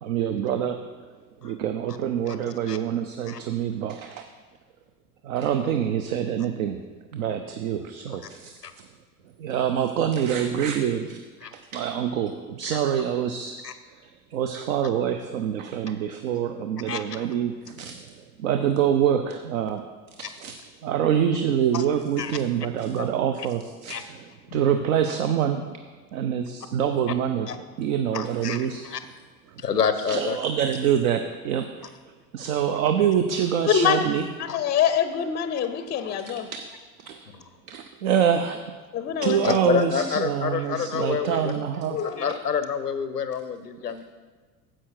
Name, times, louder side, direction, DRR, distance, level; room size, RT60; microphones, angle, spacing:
voice 1, 0.0-0.8 1.4-4.2 5.2-6.8 7.1-8.5 9.4-11.2 11.7-13.6 14.3-18.0 18.4-19.8 20.2-20.6 20.8-23.9 24.5-25.8 26.1-27.5 27.8-28.8 30.1-31.7 32.3-34.2 36.5-36.6 37.1-37.2 37.7-38.6 39.2-42.0, right 9 dB, 60° right, 7 dB, 0.7 m, -25 dB
voice 2, 16.9-17.3 21.7-21.8 22.2-22.3 23.0-23.1 23.9-24.0 24.5-24.6 27.5-27.6 28.1-29.0 29.6-30.4 34.5-34.6 37.3-37.4 39.4-41.5 42.0-44.0, left 7 dB, 90° left, 11 dB, 0.7 m, -28 dB
voice 3, 33.7-34.0 34.4-36.5 38.9-40.0 41.9-42.3, left 8 dB, 25° left, 9 dB, 0.5 m, -25 dB
9.9 x 7.6 x 4.7 m, 1.4 s
figure-of-eight pair, 75°, 46 cm